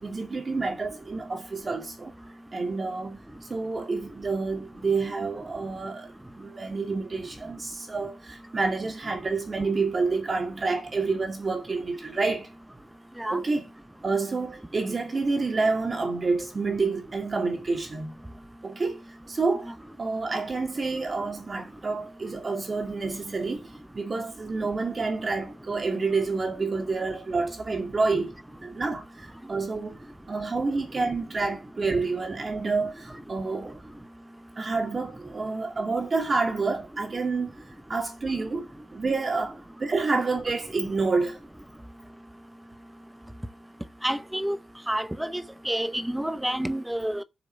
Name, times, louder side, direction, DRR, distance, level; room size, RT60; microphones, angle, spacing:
voice 1, 0.0-2.1 2.5-3.2 3.5-12.5 13.3-13.7 14.0-18.1 18.6-19.0 19.3-23.7 23.9-28.3 28.6-30.0 30.3-33.8 34.6-37.6 37.9-41.4, right 3 dB, 30° right, 2.5 m, -28 dB
voice 2, 44.0-44.6 44.9-47.2, right 1 dB, 5° right, 0.7 m, -29 dB
7.5 x 7.0 x 7.8 m
wide cardioid pair, 160°, 0 cm